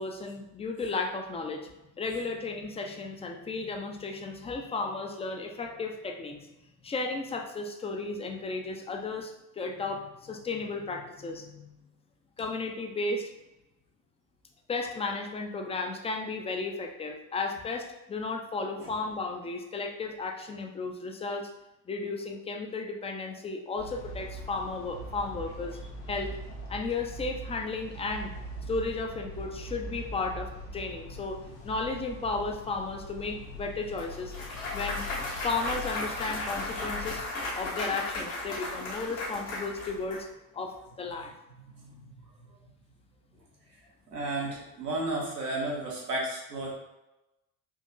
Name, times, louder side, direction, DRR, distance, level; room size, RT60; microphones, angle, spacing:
voice 1, 0.0-1.7 2.0-6.5 6.8-11.9 12.4-13.3 14.7-21.5 21.9-25.8 26.1-26.4 26.7-28.3 28.7-34.3 34.7-35.0 35.4-37.3 37.5-40.3 40.5-41.3, left 3 dB, 15° left, 3 dB, 0.4 m, -34 dB
sound 1, 23.8-37.3, equal, 90° left, 0.6 m, -42 dB
Clapping / Cheering / Applause, 34.0-40.2, left 2 dB, 65° left, 1.3 m, -35 dB
voice 2, 41.6-42.2 42.5-42.6 44.1-46.7, right 2 dB, 90° right, -3 dB, 0.9 m, -33 dB
3.8 x 2.9 x 2.6 m, 0.96 s
figure-of-eight pair, 50°, 46 cm